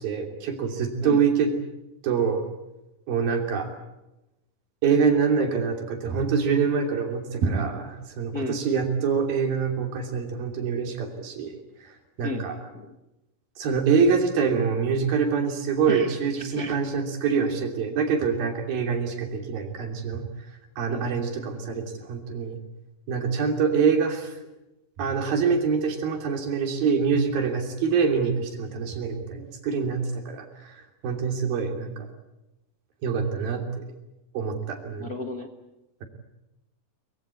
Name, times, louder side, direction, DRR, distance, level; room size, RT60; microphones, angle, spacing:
voice 1, 0.0-1.5 2.0-2.5 3.1-3.7 4.8-11.6 12.2-12.6 13.6-20.2 20.8-22.6 23.1-24.3 25.0-30.7 31.0-32.1 33.0-33.8 34.3-35.1, right 6 dB, 75° right, 4 dB, 4.8 m, -25 dB
voice 2, 8.3-8.7 12.2-12.5 12.7-13.0 15.9-16.7 20.9-21.1 35.0-35.5, left 2 dB, 45° left, 3 dB, 1.2 m, -34 dB
23.5 x 22.0 x 8.4 m, 0.94 s
omnidirectional pair, 4.2 m